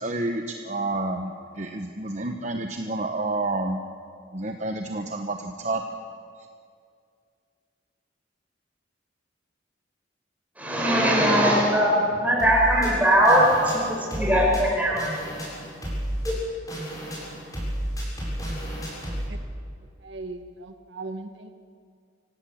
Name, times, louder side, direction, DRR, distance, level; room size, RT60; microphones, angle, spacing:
voice 1, 0.0-1.3 1.6-3.8 4.3-5.8, right 2 dB, 40° right, 4 dB, 1.1 m, -29 dB
voice 2, 10.6-13.8 14.1-15.0 16.2-16.4, equal, 10° right, -3 dB, 5.9 m, -20 dB
sound 1, 12.4-19.3, equal, 20° left, 7.4 m, -32 dB
voice 3, 20.0-21.5, right 2 dB, 75° right, 7 dB, 1.3 m, -38 dB
25.5 x 17.5 x 8.7 m, 2.2 s
head